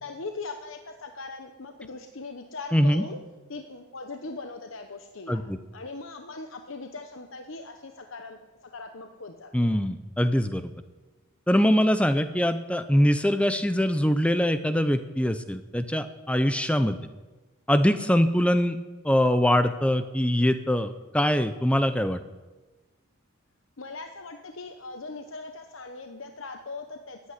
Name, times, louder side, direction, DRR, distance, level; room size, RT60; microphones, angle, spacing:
voice 1, 0.0-3.2 3.5-5.4 5.7-9.7 23.8-27.3, left 3 dB, 70° left, 5 dB, 1.0 m, -40 dB
voice 2, 2.7-3.0 5.3-5.6 9.5-10.7 11.5-17.0 17.7-18.8 19.0-22.2, equal, 5° left, 11 dB, 0.6 m, -23 dB
14.5 x 9.6 x 9.7 m, 1.2 s
head